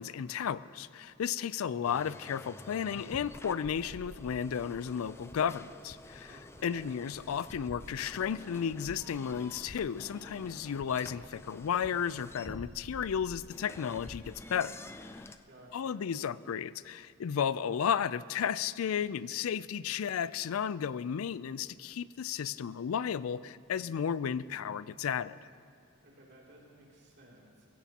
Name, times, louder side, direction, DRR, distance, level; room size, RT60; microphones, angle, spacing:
voice 1, 0.0-14.8 15.7-25.4, left 8 dB, 85° left, 17 dB, 0.4 m, -33 dB
sound 1, 1.8-15.4, left 2 dB, 10° left, 0.4 m, -49 dB
voice 2, 6.2-6.9 15.5-16.1 26.0-27.7, right 1 dB, 55° right, -3 dB, 2.8 m, -56 dB
22.0 x 16.0 x 2.9 m, 2.5 s
head